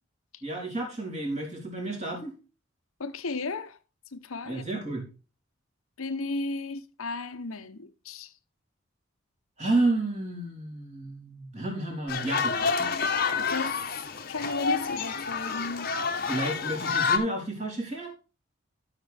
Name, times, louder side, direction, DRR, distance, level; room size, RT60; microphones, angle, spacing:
voice 1, 0.4-2.3 4.5-5.1 9.6-13.0 16.3-18.1, right 2 dB, 35° right, 3.3 m, -31 dB
voice 2, 3.0-3.8 4.1-4.6 6.0-8.3 13.4-13.8 14.3-16.1, left 3 dB, 90° left, 0.9 m, -34 dB
sound 1, 12.1-17.2, left 5 dB, 45° left, 1.0 m, -28 dB
13.0 x 5.9 x 3.4 m
head